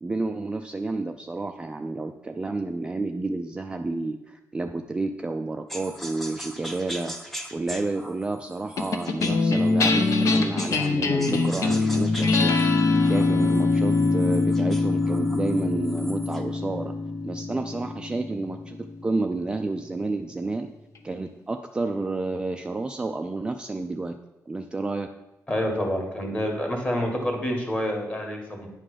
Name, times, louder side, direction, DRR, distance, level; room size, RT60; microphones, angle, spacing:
voice 1, 0.0-12.6 13.0-16.9 17.2-18.8 19.0-20.7 21.0-24.1 24.5-25.1, right 3 dB, 15° right, 5 dB, 0.4 m, -30 dB
sound 1, 5.7-10.9 11.2-16.5, equal, 5° left, 0.7 m, -41 dB
sound 2, 8.8-19.4, left 3 dB, 60° left, 0.9 m, -23 dB
voice 2, 25.5-28.7, equal, 25° left, 1 dB, 1.9 m, -27 dB
9.6 x 3.8 x 6.5 m, 0.94 s
wide cardioid pair, 145°, 6 cm